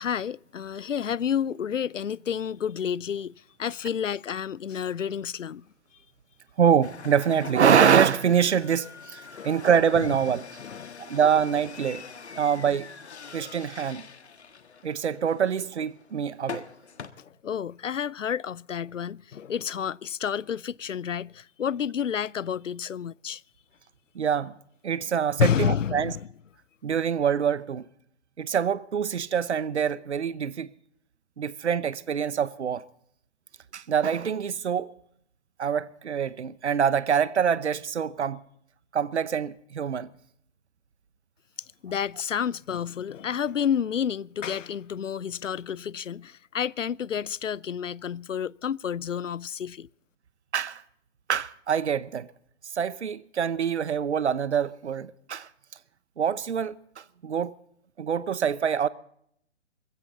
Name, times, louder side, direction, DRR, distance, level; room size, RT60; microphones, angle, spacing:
voice 1, 0.0-3.3 3.6-5.6 9.3-9.6 10.6-11.0 12.3-12.4 17.2-23.4 25.4-26.3 41.8-49.9, left 8 dB, 85° left, 0.5 m, -30 dB
voice 2, 6.6-10.4 11.0-12.0 12.3-12.9 13.3-14.0 14.8-16.7 24.1-24.5 24.8-26.1 26.8-27.9 28.4-30.7 31.4-32.8 33.7-34.9 35.6-38.4 38.9-40.1 50.5-50.8 51.3-52.3 52.7-55.5 56.2-57.5 58.0-58.9, right 7 dB, 65° right, 0.9 m, -25 dB
sound 1, 6.8-17.1, left 5 dB, 65° left, 1.5 m, -43 dB
21.5 x 16.0 x 3.9 m
figure-of-eight pair, 135°, 36 cm